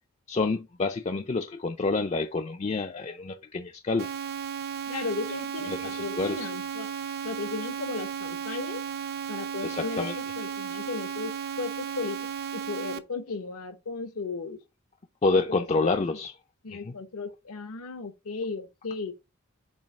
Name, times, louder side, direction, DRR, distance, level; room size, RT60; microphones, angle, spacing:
voice 1, 0.3-4.1 5.7-6.5 9.6-10.2 15.2-16.3 16.7-16.9, left 3 dB, 30° left, 0.4 m, -28 dB
sound 1, 4.0-13.0, right 7 dB, 45° right, 0.5 m, -34 dB
voice 2, 4.9-6.9 7.2-8.8 9.3-12.2 12.5-14.6 15.5-15.9 16.6-19.1, left 4 dB, 80° left, 0.8 m, -35 dB
7.2 x 2.7 x 5.2 m
head